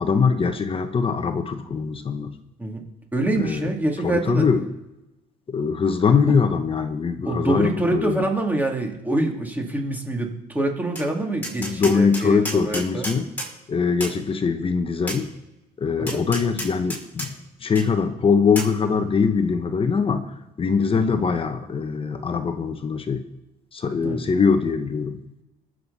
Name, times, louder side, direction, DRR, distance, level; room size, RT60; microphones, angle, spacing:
voice 1, 0.0-2.3 3.3-3.7 4.0-4.6 5.5-8.3 11.6-13.3 13.7-15.3 15.8-17.3 17.6-23.2 23.7-25.2, left 5 dB, 35° left, 8 dB, 1.1 m, -22 dB
voice 2, 3.1-4.4 7.2-13.0 16.0-16.2 20.9-21.3 24.0-24.2, right 2 dB, 10° right, 1 dB, 2.9 m, -25 dB
Tap, 11.0-11.1 11.4-13.5 14.0-14.2 15.1-15.2 16.1-17.3 17.8-17.9 18.6-18.7, equal, 10° left, 6.0 m, -31 dB
21.5 x 7.8 x 4.2 m, 0.96 s
cardioid pair, 110°, 17 cm